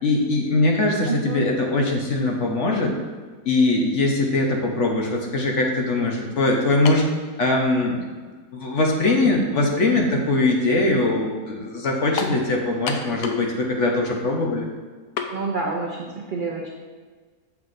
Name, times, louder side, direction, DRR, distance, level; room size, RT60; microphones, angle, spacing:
voice 1, 0.0-2.9 3.5-7.0 7.4-8.0 8.5-14.7, left 2 dB, 55° left, 0 dB, 1.0 m, -21 dB
voice 2, 1.1-1.4 15.3-16.7, right 3 dB, 70° right, -1 dB, 0.4 m, -28 dB
sound 1, 6.9-7.1 8.0-8.1 12.2-12.4 12.9-13.5 13.8-13.9 15.2-15.4, left 6 dB, 75° left, 1.1 m, -29 dB
7.6 x 5.8 x 2.6 m, 1.5 s
omnidirectional pair, 1.7 m